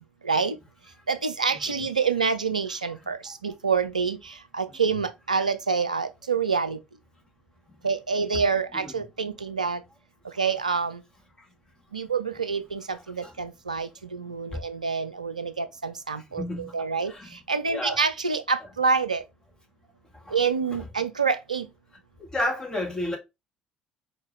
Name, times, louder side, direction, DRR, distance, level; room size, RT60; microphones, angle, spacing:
voice 1, 0.2-0.6 1.1-4.2 4.5-6.8 7.8-9.8 10.4-11.0 11.9-16.4 16.7-17.1 17.5-19.2 20.3-21.7, right 5 dB, 90° right, 0.3 m, -27 dB
voice 2, 8.7-9.4 13.2-13.3 14.5-14.6 16.4-16.8 17.1-17.4 17.7-18.0 18.6-18.7 20.3-20.4 20.7-20.9 22.2-23.2, left 1 dB, 15° left, 1.6 m, -32 dB
4.4 x 2.7 x 3.2 m
figure-of-eight pair, 55°, 4 cm